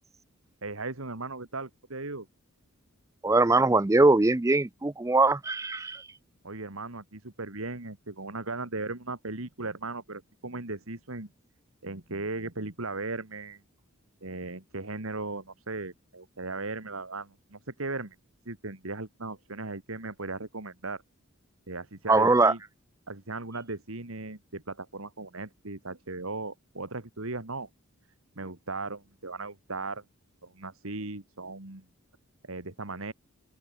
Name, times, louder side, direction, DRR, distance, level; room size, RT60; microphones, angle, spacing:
voice 1, 0.6-2.3 6.4-11.3 11.8-13.6 14.2-18.2 18.5-21.0 21.7-22.6 23.1-27.7 28.4-30.0 30.4-31.9 32.4-33.1, right 3 dB, 80° right, 2.4 m, -37 dB
voice 2, 3.2-6.1 22.1-22.5, right 2 dB, 15° right, 0.4 m, -22 dB
open air
head